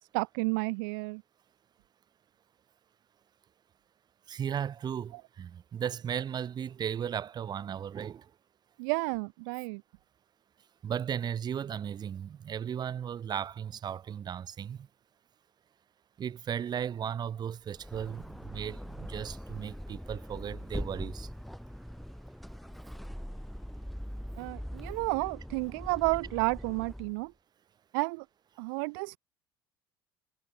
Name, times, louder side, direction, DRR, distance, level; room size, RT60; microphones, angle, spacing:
voice 1, 0.1-1.2 5.1-5.2 8.8-9.8 24.4-27.3 27.9-28.2 28.6-29.2, right 32 dB, 60° right, 0.6 m, -31 dB
voice 2, 4.3-8.3 10.8-14.9 16.2-21.3, right 8 dB, 35° right, 1.3 m, -36 dB
sound 1, 17.6-27.2, equal, ahead, 2.4 m, -42 dB
figure-of-eight pair, 65°, 13 cm